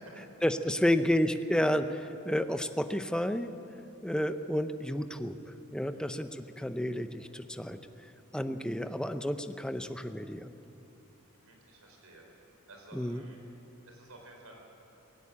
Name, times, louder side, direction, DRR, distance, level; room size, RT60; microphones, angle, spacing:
voice 1, 0.4-3.5 4.0-7.8 8.3-10.5 12.9-13.2, equal, 5° left, 9 dB, 0.6 m, -31 dB
voice 2, 11.3-13.4 13.9-14.6, right 1 dB, 80° right, 1 dB, 4.6 m, -53 dB
17.5 x 17.5 x 8.5 m, 2.9 s
head